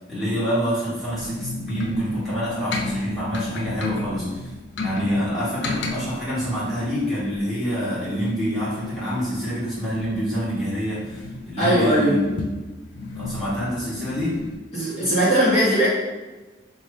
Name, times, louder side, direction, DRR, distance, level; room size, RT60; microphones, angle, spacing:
voice 1, 0.1-4.5 4.8-12.5 13.1-14.4, equal, ahead, -12 dB, 1.4 m, -26 dB
sound 1, 1.0-14.6, left 2 dB, 75° left, 0.4 m, -34 dB
voice 2, 11.6-12.2 14.7-15.9, right 1 dB, 35° left, -9 dB, 1.0 m, -19 dB
3.1 x 2.3 x 4.1 m, 1.2 s
head